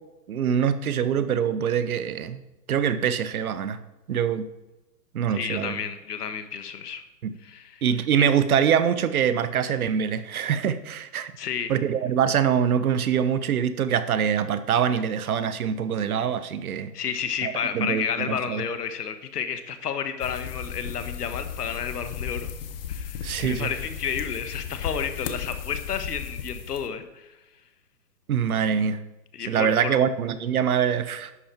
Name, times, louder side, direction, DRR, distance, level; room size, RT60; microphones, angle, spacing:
voice 1, 0.3-2.4 2.7-3.8 4.1-4.5 5.1-5.8 7.2-7.3 7.8-11.3 11.7-16.9 17.4-18.6 23.2-23.7 28.3-29.0 29.5-31.3, right 8 dB, 60° right, 13 dB, 1.0 m, -24 dB
voice 2, 5.3-7.0 7.4-7.8 11.4-11.7 16.9-22.5 22.9-27.3 29.3-30.0, left 7 dB, 65° left, 9 dB, 1.5 m, -31 dB
sound 1, 20.2-26.9, left 8 dB, 35° left, 1.0 m, -35 dB
11.0 x 8.7 x 4.5 m, 1.0 s
hypercardioid pair, 150°, 50 cm